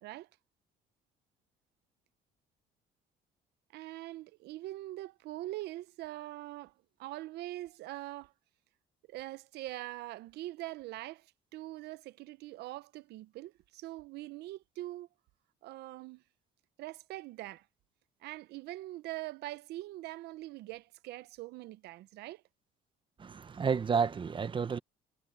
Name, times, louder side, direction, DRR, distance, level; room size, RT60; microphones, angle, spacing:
voice 1, 3.7-6.7 7.0-8.3 9.1-15.1 15.6-16.2 16.8-17.7 18.2-22.4, right 17 dB, 80° right, 0.8 m, -43 dB
voice 2, 23.2-24.8, right 6 dB, 30° right, 0.9 m, -31 dB
cardioid pair, 110°, 17 cm